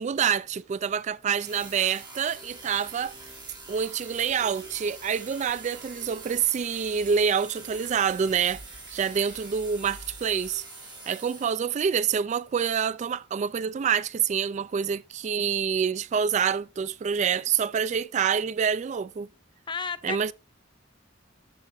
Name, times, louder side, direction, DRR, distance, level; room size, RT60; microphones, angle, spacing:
voice 1, 0.0-3.1 3.7-8.6 8.9-10.6 11.1-19.3 20.0-20.3, right 7 dB, 40° right, 0.3 m, -27 dB
sound 1, 1.4-11.9, right 3 dB, 25° right, 3.0 m, -45 dB
sound 2, 2.4-10.6, right 2 dB, 75° right, 3.9 m, -53 dB
voice 2, 19.7-20.3, left 5 dB, 25° left, 0.5 m, -33 dB
12.5 x 5.6 x 2.6 m
head